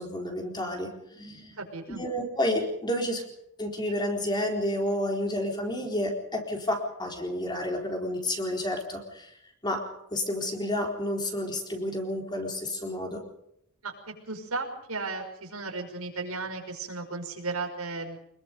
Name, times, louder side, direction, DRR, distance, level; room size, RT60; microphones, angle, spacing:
voice 1, 0.0-1.6 2.0-3.2 3.6-9.3 9.6-9.8 10.1-13.2, left 1 dB, 20° left, 2 dB, 4.2 m, -30 dB
voice 2, 1.6-2.0 13.8-18.2, right 3 dB, 90° right, 3 dB, 5.7 m, -35 dB
26.0 x 21.5 x 5.3 m, 0.76 s
head